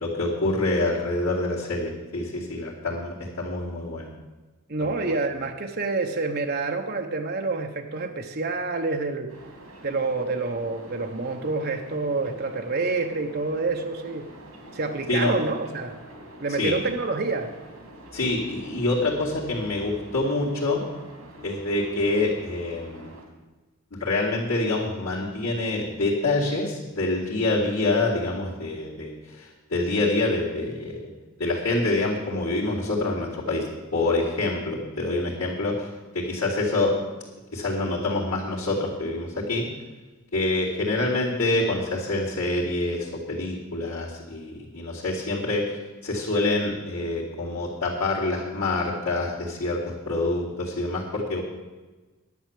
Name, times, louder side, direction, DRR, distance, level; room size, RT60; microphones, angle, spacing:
voice 1, 0.0-4.1 4.9-5.1 15.1-15.4 16.6-16.8 18.1-20.8 21.4-23.1 23.9-31.0 31.4-35.9 36.1-36.9 37.5-39.6 40.3-45.6 46.0-51.4, left 2 dB, 85° left, -9 dB, 2.6 m, -26 dB
voice 2, 4.7-9.3 9.8-14.3 14.7-15.9 16.4-17.5, right 3 dB, 45° right, 3 dB, 0.9 m, -27 dB
sound 1, 9.3-23.2, right 1 dB, 75° right, 2.8 m, -45 dB
10.5 x 8.6 x 7.4 m, 1.2 s
head